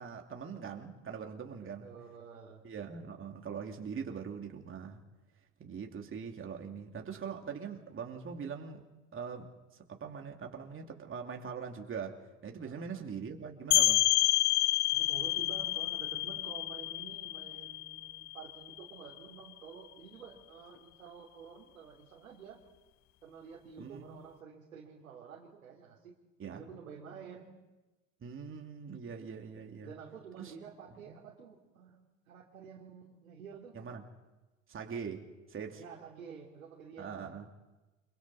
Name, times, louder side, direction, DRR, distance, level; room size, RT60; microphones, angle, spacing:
voice 1, 0.0-1.9 2.6-5.0 5.6-8.8 9.1-9.5 9.9-14.0 23.8-24.2 26.4-26.7 28.2-29.9 30.4-30.5 31.1-31.2 33.7-34.0 34.7-35.8 37.0-37.4, right 6 dB, 30° right, 2.9 m, -42 dB
voice 2, 1.5-2.7 12.6-13.0 14.9-22.6 23.2-26.1 26.4-27.5 29.8-32.0 32.3-33.8 35.7-37.3, right 6 dB, 85° right, 3.1 m, -50 dB
sound 1, 13.7-19.2, left 16 dB, 45° left, 0.8 m, -29 dB
29.5 x 26.5 x 4.3 m
hypercardioid pair, 75°, 41 cm